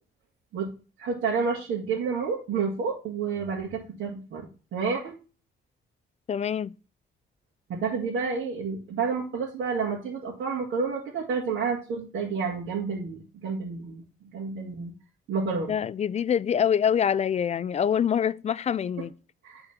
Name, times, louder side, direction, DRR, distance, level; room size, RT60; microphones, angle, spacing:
voice 1, 1.0-4.5 4.7-5.1 7.7-14.0 14.3-14.9 15.3-15.7 19.4-19.6, right 5 dB, 75° right, 2.0 m, -29 dB
voice 2, 6.3-6.7 15.7-19.1, left 8 dB, 35° left, 0.4 m, -25 dB
9.8 x 3.9 x 5.9 m
cardioid pair, 90°, 20 cm